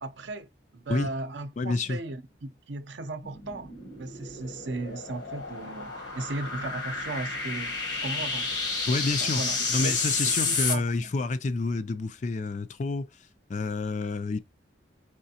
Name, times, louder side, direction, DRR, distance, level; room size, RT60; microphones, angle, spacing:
voice 1, 0.0-7.7 8.0-8.6 9.2-9.6 9.8-10.0 10.5-11.1, right 2 dB, 75° right, 0.6 m, -36 dB
voice 2, 1.6-2.0 8.9-9.4 9.7-13.1 13.5-14.4, left 3 dB, 40° left, 0.3 m, -28 dB
sound 1, 3.2-10.8, left 4 dB, 75° left, 1.4 m, -31 dB
4.9 x 3.3 x 2.8 m
head